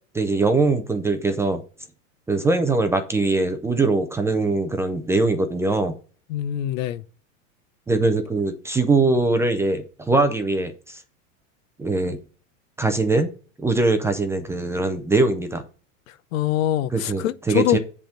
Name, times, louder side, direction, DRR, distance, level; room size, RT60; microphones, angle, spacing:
voice 1, 0.1-1.6 2.3-6.0 7.9-11.0 11.8-12.2 12.8-13.3 13.6-15.6 16.9-17.8, right 3 dB, 5° right, 0.4 m, -22 dB
voice 2, 6.3-7.0 16.3-17.8, left 12 dB, 75° left, 0.8 m, -23 dB
7.7 x 3.6 x 6.4 m
supercardioid pair, 140°, 40 cm